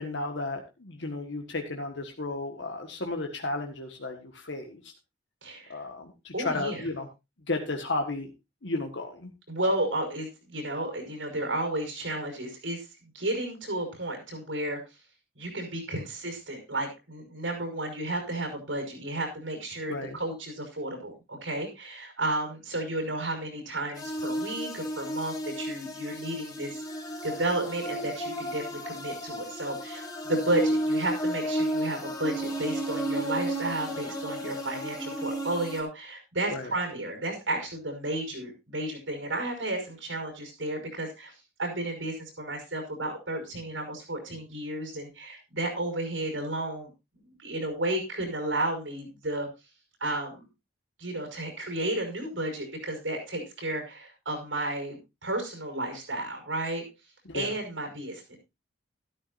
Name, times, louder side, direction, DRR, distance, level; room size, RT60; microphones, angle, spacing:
voice 1, 0.0-4.8 5.7-7.1 7.5-8.3 8.6-9.3 19.9-20.2 36.5-36.7 57.3-57.5, left 2 dB, 75° left, 4 dB, 1.6 m, -33 dB
voice 2, 5.4-5.8 6.3-6.9 9.5-12.9 13.1-14.8 15.4-26.8 27.2-46.9 47.3-49.5 50.0-50.4 51.0-56.9 57.3-58.4, right 1 dB, 90° right, 4 dB, 5.4 m, -32 dB
sound 1, 24.0-35.8, equal, 20° left, 2.3 m, -32 dB
13.0 x 12.5 x 2.6 m, 0.24 s
head